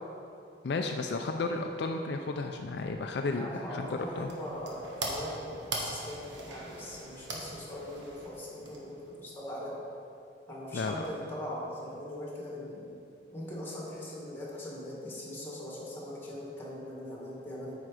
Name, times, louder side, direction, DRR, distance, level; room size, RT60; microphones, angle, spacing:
voice 1, 0.6-3.9 4.2-4.3 10.7-11.0, left 3 dB, 70° left, 4 dB, 0.4 m, -33 dB
voice 2, 3.3-9.8 10.5-13.0 13.3-17.7, left 1 dB, 15° left, -5 dB, 1.8 m, -41 dB
sound 1, 3.8-9.2, right 2 dB, 85° right, 1.3 m, -41 dB
9.0 x 5.0 x 4.9 m, 2.5 s
head